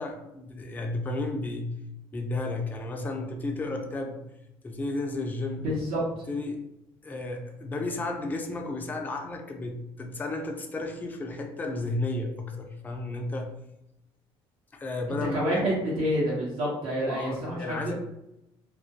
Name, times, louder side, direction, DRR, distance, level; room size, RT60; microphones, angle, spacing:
voice 1, 0.0-1.8 2.1-4.2 4.6-5.7 6.3-6.7 7.0-13.5 14.7-15.5 17.1-17.9, left 2 dB, 15° left, 2 dB, 0.4 m, -33 dB
voice 2, 5.6-6.0 15.3-17.9, equal, 60° right, -7 dB, 0.8 m, -28 dB
2.2 x 2.1 x 2.7 m, 0.88 s
cardioid pair, 120°, 11 cm